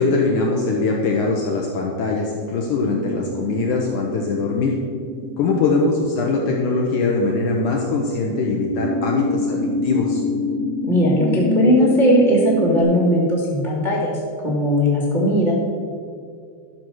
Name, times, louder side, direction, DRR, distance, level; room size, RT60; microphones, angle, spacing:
voice 1, 0.0-4.8 5.4-10.2, left 3 dB, 75° left, -1 dB, 1.8 m, -22 dB
sound 1, 2.5-12.8, left 2 dB, 15° left, 0.9 m, -27 dB
voice 2, 10.8-15.5, equal, 80° right, -6 dB, 0.4 m, -18 dB
12.5 x 5.9 x 6.3 m, 2.3 s
omnidirectional pair, 4.7 m